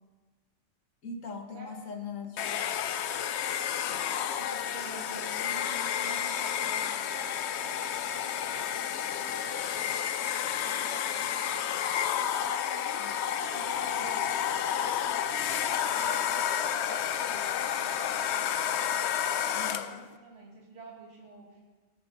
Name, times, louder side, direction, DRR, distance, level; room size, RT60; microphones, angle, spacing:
voice 1, 1.0-2.4 3.9-4.5 13.0-13.1 19.5-20.0, left 5 dB, 90° left, 5 dB, 1.7 m, -41 dB
Domestic sounds home sounds, 2.4-20.0, left 9 dB, 65° left, 0.8 m, -31 dB
voice 2, 4.4-9.7 10.4-13.0 13.4-18.6 19.5-21.6, right 3 dB, 55° right, -3 dB, 2.4 m, -48 dB
17.0 x 10.5 x 5.2 m, 1.3 s
omnidirectional pair, 1.3 m